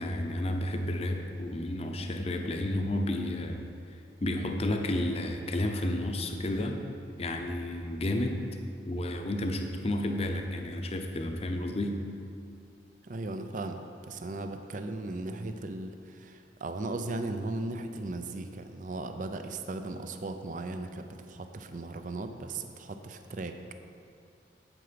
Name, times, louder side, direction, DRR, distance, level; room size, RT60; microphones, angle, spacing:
voice 1, 0.0-3.7 4.2-6.8 7.2-8.4 8.9-12.0, left 1 dB, 35° left, 4 dB, 0.7 m, -31 dB
voice 2, 13.0-23.6, right 2 dB, 45° right, 7 dB, 0.5 m, -37 dB
9.7 x 7.9 x 5.1 m, 2.4 s
head